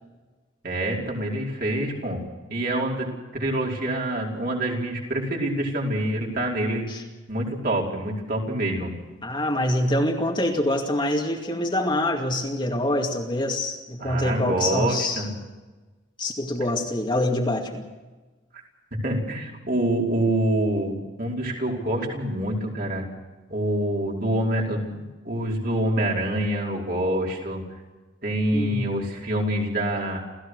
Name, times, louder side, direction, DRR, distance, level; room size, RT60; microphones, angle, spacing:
voice 1, 0.6-2.2 2.5-3.1 3.3-6.9 7.3-8.9 14.0-15.3 19.0-23.0 23.5-27.6 28.2-30.2, right 1 dB, 50° right, -2 dB, 5.1 m, -26 dB
voice 2, 9.2-15.2 16.2-17.9 28.5-28.9, left 1 dB, 25° left, 1 dB, 2.4 m, -25 dB
29.5 x 15.5 x 6.6 m, 1.2 s
head